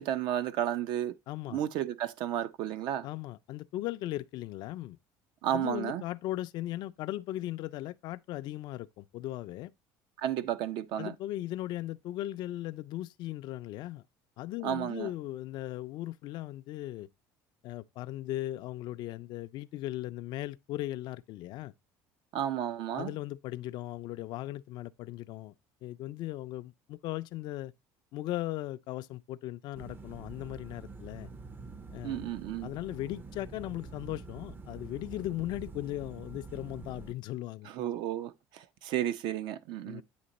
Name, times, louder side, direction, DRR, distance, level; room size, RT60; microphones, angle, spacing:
voice 1, 0.0-1.1 1.5-3.1 5.4-6.0 10.2-11.1 14.6-15.1 22.3-23.1 32.0-32.7 37.7-40.0, right 11 dB, 70° right, 0.6 m, -32 dB
voice 2, 1.3-1.6 3.0-5.0 5.5-9.7 11.0-14.0 14.4-17.1 17.6-21.7 23.0-25.5 25.8-27.7 28.1-31.3 31.9-32.3 32.6-37.7 39.8-40.0, left 15 dB, 60° left, 0.4 m, -38 dB
sound 1, 29.7-37.1, right 4 dB, 25° right, 0.5 m, -46 dB
8.6 x 2.9 x 3.9 m
supercardioid pair, 110°, 8 cm